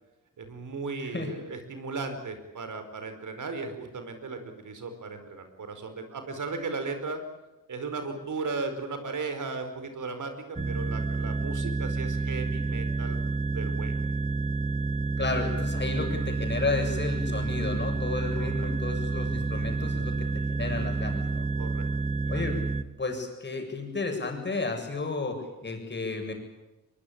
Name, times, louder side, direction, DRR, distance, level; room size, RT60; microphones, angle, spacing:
voice 1, 0.4-7.2 7.7-13.2 13.5-13.9 18.4-18.7 21.6-21.9 22.2-22.4, right 4 dB, 60° right, 8 dB, 5.0 m, -36 dB
sound 1, 10.6-22.8, right 3 dB, 20° right, 1.2 m, -29 dB
voice 2, 15.2-21.5 22.3-22.6 23.0-26.3, left 3 dB, 30° left, 3 dB, 7.2 m, -32 dB
22.5 x 22.5 x 8.8 m, 1.0 s
cardioid pair, 95°, 34 cm